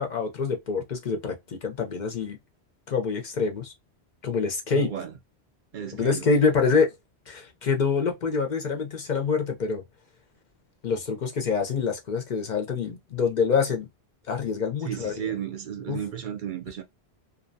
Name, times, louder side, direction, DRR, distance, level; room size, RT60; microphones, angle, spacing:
voice 1, 0.0-2.4 2.9-3.7 4.2-4.9 6.0-6.9 7.3-9.8 10.8-13.9 14.3-15.3 15.9-16.0, left 5 dB, 55° left, 0.6 m, -26 dB
voice 2, 4.7-5.1 5.7-6.4 14.8-16.8, right 9 dB, 60° right, 0.6 m, -33 dB
2.6 x 2.1 x 2.5 m
omnidirectional pair, 1.1 m